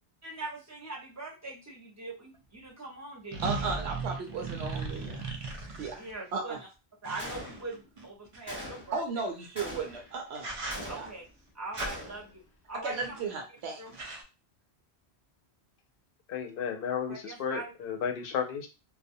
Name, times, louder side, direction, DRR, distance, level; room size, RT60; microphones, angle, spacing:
voice 1, 0.2-3.6 5.9-6.7 7.0-9.0 10.9-11.2 11.5-12.4 12.7-13.0 13.8-13.9 17.1-17.7, right 2 dB, 20° right, -3 dB, 0.6 m, -41 dB
sound 1, 2.3-2.4 3.3-6.1 7.0-8.4 9.8-10.0 10.3-11.1 11.7-11.9 12.9-13.3 13.6-13.7 13.9-14.2, right 3 dB, 60° right, 0.3 m, -37 dB
voice 2, 3.4-5.3 5.8-6.0 6.3-6.6 8.9-10.5 10.9-11.1 12.8-13.8, right 4 dB, 80° right, 3 dB, 0.8 m, -35 dB
Gunshot gunfire, 7.2-7.9 8.5-9.0 9.5-10.2 10.7-11.4 11.8-12.3, left 1 dB, 10° left, 0.9 m, -42 dB
voice 3, 16.3-18.7, left 7 dB, 65° left, 4 dB, 0.7 m, -33 dB
2.3 x 2.0 x 2.6 m, 0.29 s
omnidirectional pair, 1.1 m